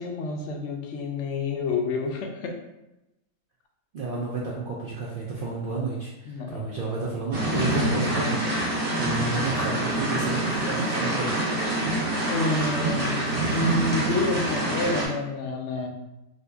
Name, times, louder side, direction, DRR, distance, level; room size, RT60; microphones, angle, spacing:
voice 1, 0.0-2.6 6.2-6.7 12.3-13.2 13.5-15.9, left 3 dB, 65° left, 2 dB, 0.8 m, -29 dB
voice 2, 3.9-11.6, right 3 dB, 75° right, -4 dB, 0.4 m, -31 dB
sound 1, 7.3-15.1, right 1 dB, 45° right, 0.9 m, -26 dB
2.7 x 2.7 x 3.3 m, 0.95 s
omnidirectional pair, 1.5 m